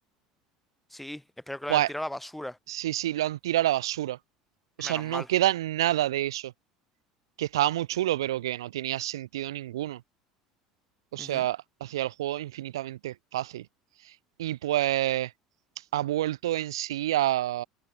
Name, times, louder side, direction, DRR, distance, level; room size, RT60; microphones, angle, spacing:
voice 1, 0.9-2.6 4.8-5.3 11.2-11.5, left 1 dB, 5° left, 1.9 m, -37 dB
voice 2, 2.7-4.2 4.8-6.4 7.4-10.0 11.1-13.6 14.4-15.3 15.9-17.6, right 14 dB, 85° right, 0.3 m, -28 dB
hypercardioid pair, 75°, 2 cm